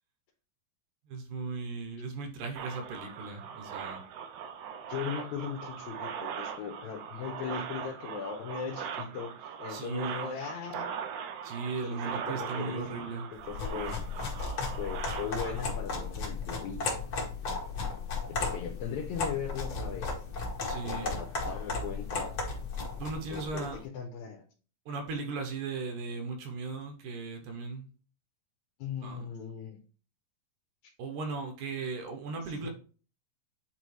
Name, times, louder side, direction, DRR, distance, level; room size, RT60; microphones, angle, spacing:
voice 1, 1.1-4.0 9.7-10.2 11.4-13.2 20.7-21.1 23.0-23.8 24.9-27.9 29.0-29.3 31.0-32.7, right 4 dB, 70° right, 4 dB, 2.3 m, -37 dB
sound 1, 2.6-15.6, right 7 dB, 90° right, 1.7 m, -40 dB
voice 2, 4.9-11.0 11.8-14.0 14.8-16.8 18.4-20.1 20.8-22.4 23.3-24.4 28.8-29.8 30.8-30.9 32.5-32.7, left 7 dB, 70° left, 1 dB, 1.9 m, -39 dB
sound 2, 13.4-23.8, left 4 dB, 55° left, 1.5 m, -35 dB
8.5 x 3.9 x 3.1 m, 0.38 s
omnidirectional pair, 4.0 m